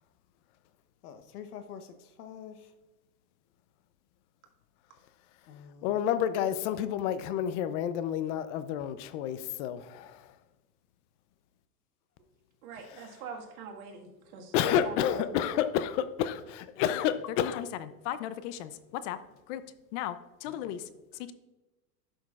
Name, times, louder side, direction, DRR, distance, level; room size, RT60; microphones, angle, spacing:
voice 1, 1.0-2.7 5.5-6.0 20.5-20.6 20.9-21.0, left 8 dB, 85° left, 9 dB, 1.0 m, -47 dB
voice 2, 5.8-10.3 12.9-13.0 14.5-19.2 19.5-19.6 19.9-20.8, left 10 dB, 55° left, 13 dB, 0.6 m, -30 dB
voice 3, 12.6-15.4, right 5 dB, 70° right, 1 dB, 1.8 m, -43 dB
11.0 x 6.3 x 2.4 m, 1.1 s
supercardioid pair, 125°, 45 cm